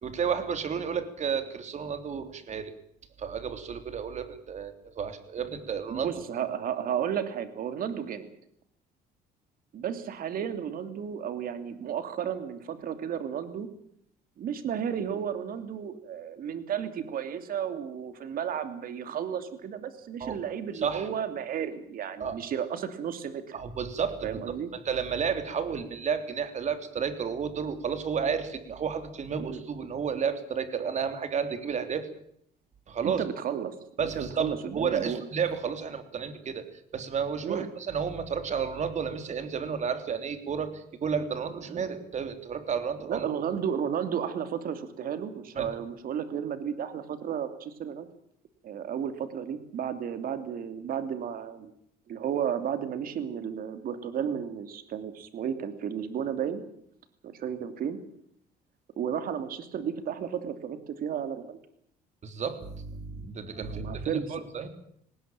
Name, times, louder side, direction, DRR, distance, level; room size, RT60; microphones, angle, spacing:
voice 1, 0.0-2.7 3.2-6.2 20.2-20.4 20.8-21.1 22.2-22.4 23.5-24.4 24.8-32.1 32.9-33.3 34.0-36.7 36.9-43.2 45.5-45.7 62.2-64.7, right 6 dB, 45° right, 9 dB, 3.4 m, -32 dB
voice 2, 5.9-8.3 9.7-13.7 14.4-23.5 24.2-24.7 29.4-29.6 33.0-33.7 34.0-35.3 37.4-37.7 41.7-41.9 43.0-48.1 48.6-51.7 52.1-56.6 57.2-58.0 59.0-61.6 63.4-64.4, right 8 dB, 60° right, 10 dB, 2.8 m, -33 dB
19.5 x 18.5 x 9.0 m, 0.68 s
cardioid pair, 110°, 17 cm